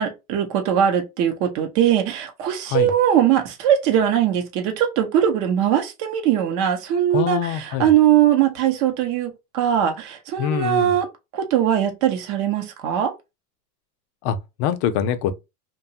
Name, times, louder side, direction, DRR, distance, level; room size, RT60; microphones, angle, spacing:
voice 1, 0.0-11.1 11.3-13.1, right 10 dB, 40° right, 0.7 m, -20 dB
voice 2, 7.1-7.9 10.4-10.9 14.2-15.3, left 9 dB, 45° left, 0.5 m, -24 dB
2.8 x 2.2 x 2.6 m
supercardioid pair, 135°, 45 cm